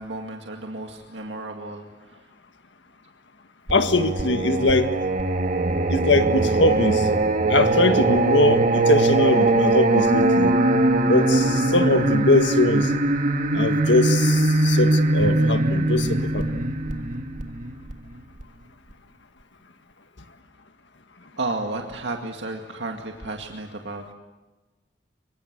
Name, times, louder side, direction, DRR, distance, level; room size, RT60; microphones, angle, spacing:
voice 1, 0.0-2.3 21.4-24.1, right 2 dB, 70° right, 2 dB, 2.1 m, -33 dB
voice 2, 3.7-5.0 5.9-7.1 7.5-10.6 11.1-12.9 13.5-16.6, left 2 dB, 70° left, 8 dB, 1.7 m, -21 dB
Singing, 3.7-18.4, right 2 dB, 45° right, 1.5 m, -21 dB
25.5 x 23.5 x 8.1 m, 1.2 s
head